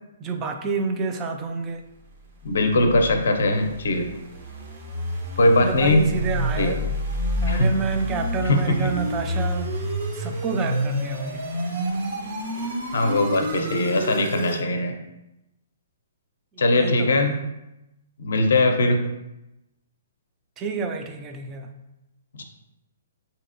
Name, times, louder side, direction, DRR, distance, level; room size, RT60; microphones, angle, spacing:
voice 1, 0.0-1.8 5.6-6.8 7.4-9.7 10.1-11.4 16.7-17.3 20.6-21.7, right 4 dB, 25° right, 4 dB, 0.3 m, -29 dB
voice 2, 2.4-4.1 5.4-6.1 6.6-6.8 7.4-7.7 8.4-8.9 12.9-14.9 16.6-17.3 18.2-19.0 22.4-22.5, left 2 dB, 70° left, 5 dB, 0.5 m, -20 dB
sound 1, 2.5-14.6, equal, 50° right, 0.7 m, -29 dB
4.0 x 2.7 x 2.5 m, 0.94 s
hypercardioid pair, 130°, 0 cm